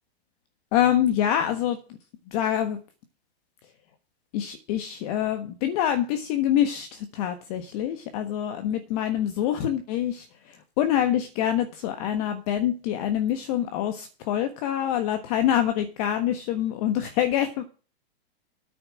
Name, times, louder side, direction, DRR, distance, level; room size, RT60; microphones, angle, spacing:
voice 1, 0.7-1.8 2.3-2.8 4.3-17.6, left 10 dB, 40° left, 8 dB, 1.4 m, -25 dB
9.4 x 6.9 x 7.6 m, 0.36 s
hypercardioid pair, 150°, 31 cm